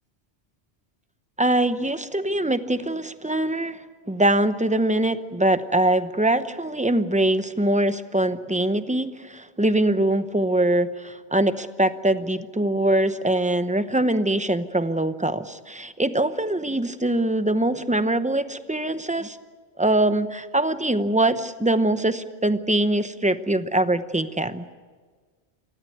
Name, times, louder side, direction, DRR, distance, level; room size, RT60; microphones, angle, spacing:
voice 1, 1.4-3.8 4.1-19.4 19.8-24.7, right 1 dB, 10° right, 11 dB, 0.7 m, -23 dB
27.5 x 15.5 x 9.3 m, 1.5 s
omnidirectional pair, 1.1 m